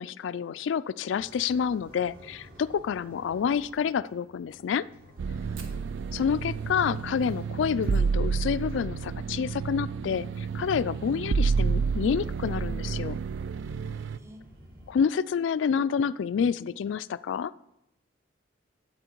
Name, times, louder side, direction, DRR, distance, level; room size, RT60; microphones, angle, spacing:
voice 1, 0.0-4.9 6.1-13.2 14.9-17.5, left 7 dB, 70° left, 18 dB, 0.3 m, -28 dB
sound 1, 1.1-14.9, equal, 50° right, 2.0 m, -52 dB
sound 2, 5.2-14.2, right 5 dB, 70° right, 0.3 m, -30 dB
voice 2, 5.3-5.8 13.6-14.5, equal, 15° right, 7 dB, 0.7 m, -53 dB
Fire, 5.5-10.1 10.3-10.4 10.7-10.8 11.1-11.6 12.1-12.2 13.2-13.4, right 5 dB, 85° right, 1.5 m, -55 dB
10.0 x 7.4 x 4.5 m, 0.86 s
head